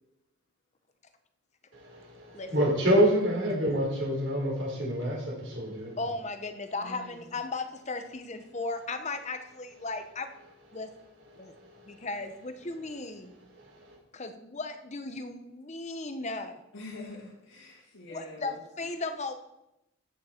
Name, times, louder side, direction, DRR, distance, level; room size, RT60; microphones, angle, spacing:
voice 1, 1.7-5.9 11.7-11.8 13.7-14.0, equal, 55° right, -2 dB, 4.6 m, -27 dB
voice 2, 6.0-10.3 10.7-10.9 11.4-11.5 11.8-13.3 14.1-16.6 18.1-19.3, left 3 dB, 30° left, 8 dB, 1.0 m, -36 dB
voice 3, 6.7-7.2 16.7-18.6, left 2 dB, 75° left, -7 dB, 2.6 m, -44 dB
14.0 x 9.5 x 4.5 m, 0.90 s
head